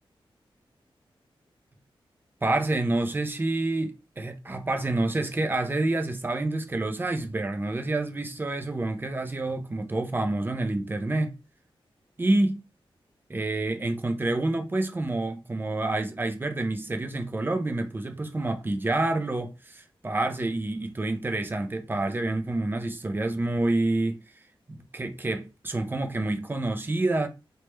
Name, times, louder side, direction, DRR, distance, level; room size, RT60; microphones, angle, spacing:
voice 1, 2.4-11.3 12.2-12.6 13.3-24.2 24.7-27.3, right 2 dB, 20° right, 0.4 m, -28 dB
3.2 x 2.1 x 3.0 m
wide cardioid pair, 155°, 9 cm